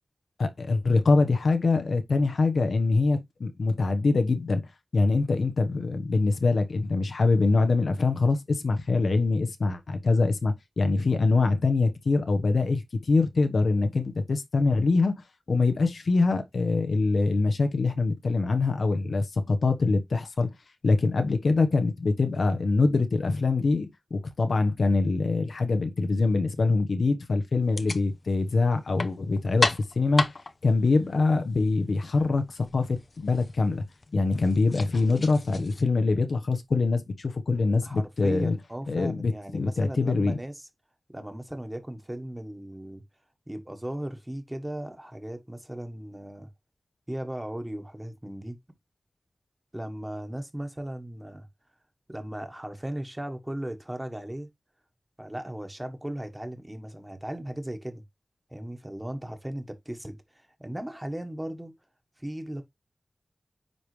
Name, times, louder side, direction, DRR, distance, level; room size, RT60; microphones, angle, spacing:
voice 1, 0.4-4.6 4.9-15.1 15.5-20.5 20.8-30.2 30.6-33.8 34.1-38.5 38.9-40.4, left 3 dB, 80° left, 1.0 m, -24 dB
sound 1, 27.6-35.8, left 3 dB, 50° left, 0.6 m, -35 dB
voice 2, 37.8-40.7 41.1-43.0 43.5-46.5 47.1-48.6 49.7-51.5 52.1-54.5 55.2-58.0 58.5-61.7 62.2-62.6, right 1 dB, 15° right, 1.3 m, -37 dB
9.5 x 3.5 x 3.2 m
wide cardioid pair, 100°, 0 cm